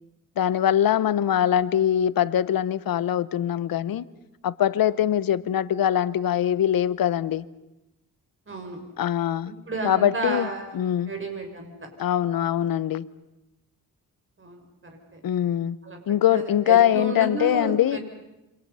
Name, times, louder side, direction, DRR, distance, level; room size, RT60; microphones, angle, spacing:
voice 1, 0.4-4.1 4.4-7.4 9.0-9.5 9.8-10.5 10.7-11.1 12.0-13.1 15.2-15.8 16.1-18.0, left 10 dB, 85° left, 0.9 m, -22 dB
voice 2, 8.5-8.8 9.7-10.8 11.1-11.7 14.4-14.6 15.1-15.2 15.8-18.0, right 2 dB, 35° right, 6.1 m, -32 dB
28.5 x 25.5 x 5.6 m
cardioid pair, 90°, 34 cm